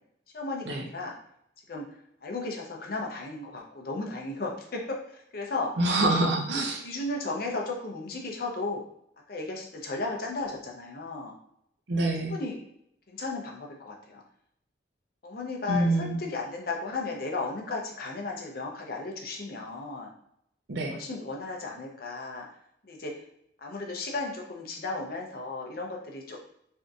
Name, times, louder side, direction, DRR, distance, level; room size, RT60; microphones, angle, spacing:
voice 1, 0.3-1.1 1.7-1.8 2.2-5.7 6.8-8.8 9.3-11.3 12.2-12.6 13.1-14.2 15.2-20.1 20.9-22.5 22.8-23.1 23.6-26.4, left 3 dB, 50° left, 0 dB, 0.6 m, -35 dB
voice 2, 5.8-6.8 11.9-12.3 15.7-16.2 20.7-21.0, right 2 dB, 65° right, 2 dB, 0.6 m, -26 dB
3.5 x 2.6 x 2.4 m, 0.73 s
head